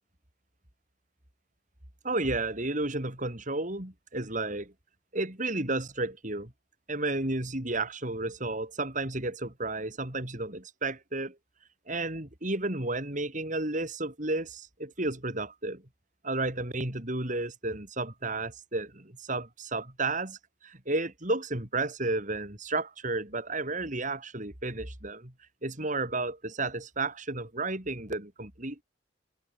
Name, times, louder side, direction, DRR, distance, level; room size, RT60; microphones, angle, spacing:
voice 1, 2.0-4.7 5.1-6.5 6.9-11.4 11.9-15.8 16.2-25.3 25.6-28.8, right 2 dB, 40° right, 4.0 m, -32 dB
head